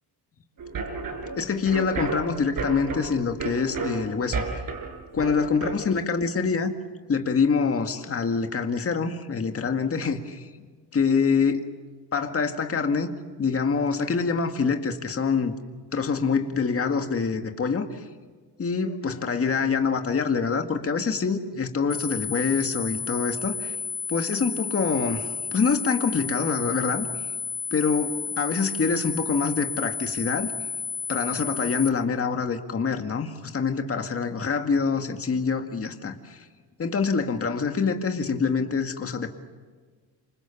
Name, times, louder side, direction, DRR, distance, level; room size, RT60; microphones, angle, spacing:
sound 1, 0.6-5.8, right 4 dB, 55° right, 6.0 m, -32 dB
voice 1, 1.4-4.6 5.1-6.7 7.1-10.4 10.9-11.6 12.1-13.1 13.4-15.5 15.9-18.0 18.6-23.8 24.1-27.3 27.7-30.5 31.1-36.5 36.8-39.3, left 5 dB, 35° left, 6 dB, 2.0 m, -25 dB
sound 2, 21.9-31.9, left 6 dB, 5° right, 1.6 m, -32 dB
28.0 x 26.5 x 7.2 m, 1.5 s
cardioid pair, 125°, 41 cm